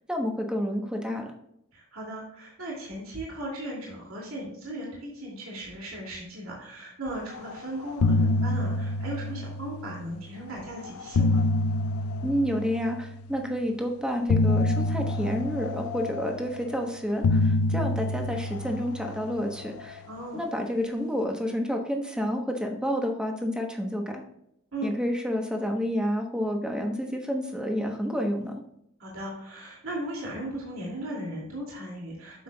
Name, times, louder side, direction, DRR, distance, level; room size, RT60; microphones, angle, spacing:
voice 1, 0.1-1.3 12.2-20.0 20.3-24.2 24.8-28.5, equal, 5° right, 2 dB, 1.1 m, -29 dB
voice 2, 1.7-11.4 20.1-20.4 24.7-24.9 29.0-32.4, right 1 dB, 75° right, -4 dB, 2.7 m, -37 dB
sound 1, 7.3-7.6 7.8-10.2 10.8-13.3 14.3-16.7 17.2-19.8, left 2 dB, 85° left, 0.5 m, -27 dB
9.2 x 7.2 x 2.3 m, 0.78 s
head